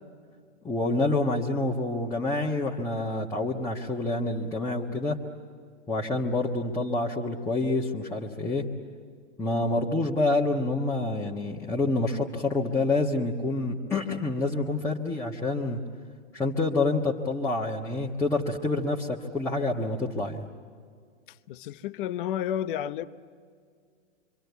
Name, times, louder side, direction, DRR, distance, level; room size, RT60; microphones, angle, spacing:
voice 1, 0.6-5.2 5.9-8.7 9.4-15.8 16.3-20.5, left 2 dB, 10° left, -5 dB, 1.3 m, -27 dB
voice 2, 21.3-23.1, left 10 dB, 45° left, 13 dB, 0.9 m, -31 dB
26.5 x 24.5 x 8.2 m, 2.1 s
hypercardioid pair, 140°, 36 cm